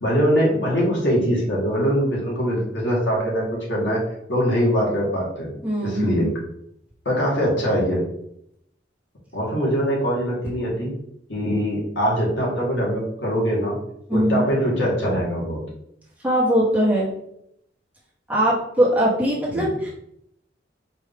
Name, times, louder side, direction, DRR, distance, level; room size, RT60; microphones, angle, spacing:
voice 1, 0.0-4.0 4.3-5.5 5.8-6.3 7.0-8.0 9.3-10.9 11.3-13.8 14.1-15.6 19.5-19.7, equal, 85° left, -3 dB, 1.6 m, -22 dB
voice 2, 5.6-6.3 14.1-14.4 16.2-17.1 18.3-19.9, equal, 10° right, -7 dB, 1.3 m, -21 dB
4.7 x 2.6 x 3.5 m, 0.75 s
head